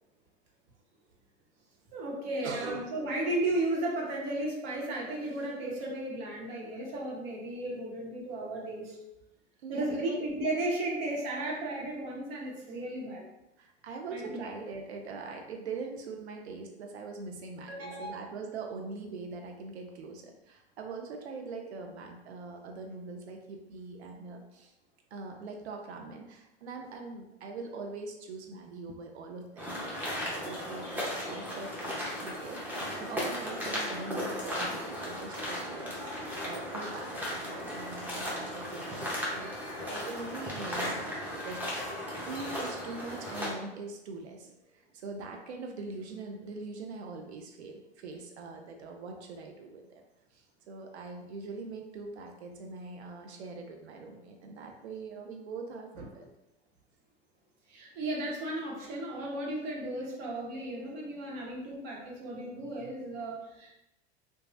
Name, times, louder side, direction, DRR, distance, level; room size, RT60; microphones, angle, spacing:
voice 1, 1.9-9.0 9.7-13.2 14.1-14.5 17.7-18.3 34.3-34.4 55.9-56.1 57.7-63.7, right 1 dB, 65° right, -2 dB, 1.1 m, -34 dB
voice 2, 2.4-2.9 9.6-10.2 13.6-24.7 25.1-39.6 39.9-42.0 42.3-50.0 50.3-56.3, right 3 dB, 90° right, 3 dB, 0.5 m, -42 dB
sound 1, 29.6-43.5, equal, 5° right, 0.8 m, -36 dB
3.0 x 2.3 x 2.5 m, 0.91 s
hypercardioid pair, 95°, 32 cm